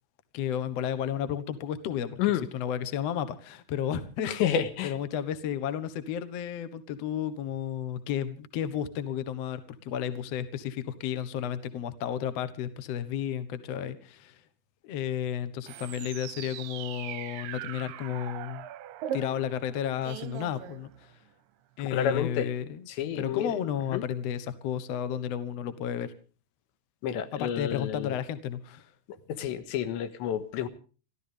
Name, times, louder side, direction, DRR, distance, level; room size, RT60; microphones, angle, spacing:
voice 1, 0.3-2.2 2.5-4.3 4.8-14.4 14.8-18.7 19.1-21.2 21.8-22.9 23.1-26.1 27.3-28.9, left 9 dB, 75° left, 13 dB, 1.5 m, -32 dB
voice 2, 4.3-4.9 21.8-22.5 23.0-23.6 23.9-24.0 27.0-28.1 29.3-30.7, left 9 dB, 90° left, 10 dB, 3.7 m, -29 dB
sound 1, 15.6-21.3, right 11 dB, 75° right, 2.1 m, -40 dB
29.5 x 13.5 x 3.5 m, 0.37 s
omnidirectional pair, 5.0 m